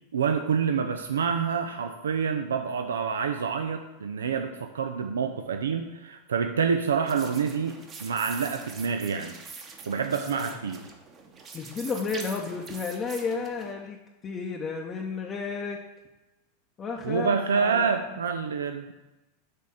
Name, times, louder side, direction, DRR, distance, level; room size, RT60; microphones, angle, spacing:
voice 1, 0.1-7.7 8.0-9.4 9.9-10.8 17.0-18.9, right 6 dB, 85° right, 7 dB, 0.4 m, -27 dB
sound 1, 7.1-13.7, right 4 dB, 35° right, 1.0 m, -44 dB
voice 2, 10.2-10.5 11.5-15.8 16.8-17.9, left 4 dB, 30° left, 0 dB, 0.7 m, -32 dB
6.5 x 3.5 x 5.6 m, 1.1 s
hypercardioid pair, 95°, 0 cm